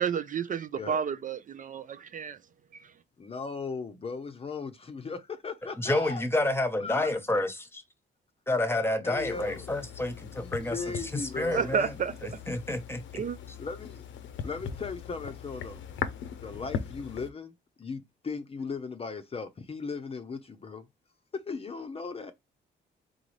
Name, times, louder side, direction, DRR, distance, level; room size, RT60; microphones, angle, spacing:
voice 1, 0.0-2.4 2.7-2.8 11.5-12.1 13.2-13.4, right 6 dB, 40° right, 0.5 m, -31 dB
voice 2, 3.2-6.2 6.8-7.1 9.0-9.7 10.3-11.7 13.6-14.0 14.4-15.8 16.4-20.9 21.5-22.3, left 4 dB, 30° left, 0.6 m, -37 dB
voice 3, 5.8-7.8 8.5-11.9 12.2-13.2, left 2 dB, 10° left, 1.0 m, -29 dB
sound 1, 9.1-17.3, left 7 dB, 70° left, 0.7 m, -40 dB
3.9 x 3.9 x 3.2 m
cardioid pair, 90°, 20 cm